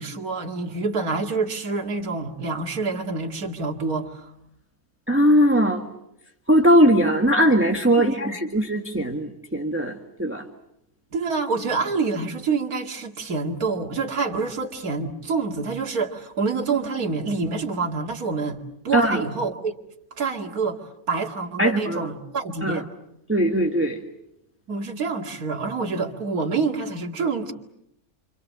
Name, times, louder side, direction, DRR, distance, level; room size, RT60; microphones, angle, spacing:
voice 1, 0.0-4.3 8.0-8.4 11.1-19.7 20.2-20.8 21.1-22.9 24.7-27.5, right 4 dB, 70° right, 2 dB, 2.7 m, -27 dB
voice 2, 5.1-5.8 6.5-9.9 10.2-10.4 18.9-19.2 21.6-22.1 22.6-22.8 23.3-24.0, equal, 10° right, 2 dB, 1.7 m, -19 dB
28.5 x 27.0 x 7.5 m, 0.80 s
omnidirectional pair, 1.6 m